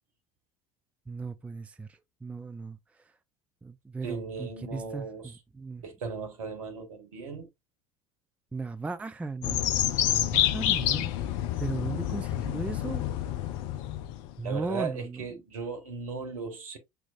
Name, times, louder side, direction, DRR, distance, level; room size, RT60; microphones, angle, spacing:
voice 1, 1.1-3.1 3.6-5.8 8.5-9.7 10.1-11.1 11.6-13.0 14.4-15.2, right 3 dB, 5° right, 0.4 m, -37 dB
voice 2, 4.0-5.4 5.8-7.5 14.4-16.8, right 5 dB, 65° right, 1.3 m, -37 dB
sound 1, 9.4-14.4, left 12 dB, 55° left, 0.6 m, -28 dB
6.1 x 3.4 x 2.5 m
figure-of-eight pair, 65°, 19 cm